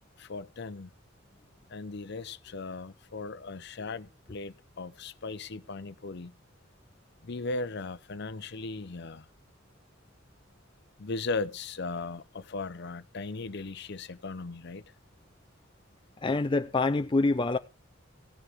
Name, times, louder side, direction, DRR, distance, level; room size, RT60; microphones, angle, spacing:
voice 1, 0.2-0.9 1.7-6.3 7.2-9.3 11.0-14.9, left 3 dB, 60° left, 0.7 m, -37 dB
voice 2, 16.2-17.6, left 3 dB, 25° left, 0.5 m, -26 dB
16.0 x 9.8 x 3.6 m
head